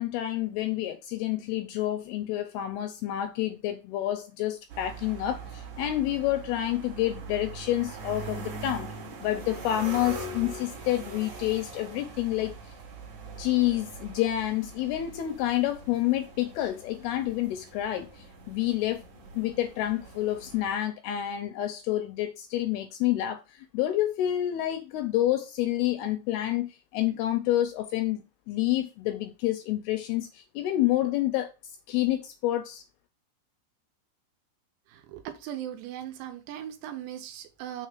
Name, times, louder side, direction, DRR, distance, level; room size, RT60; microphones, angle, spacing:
voice 1, 0.0-8.9 9.2-12.7 13.4-19.0 19.3-28.2 28.5-31.5 31.9-32.8, left 13 dB, 80° left, 2.3 m, -28 dB
sound 1, 4.7-20.7, right 3 dB, 50° right, 2.8 m, -42 dB
voice 2, 34.9-37.9, right 11 dB, 85° right, 3.1 m, -38 dB
6.5 x 3.4 x 5.8 m
omnidirectional pair, 5.0 m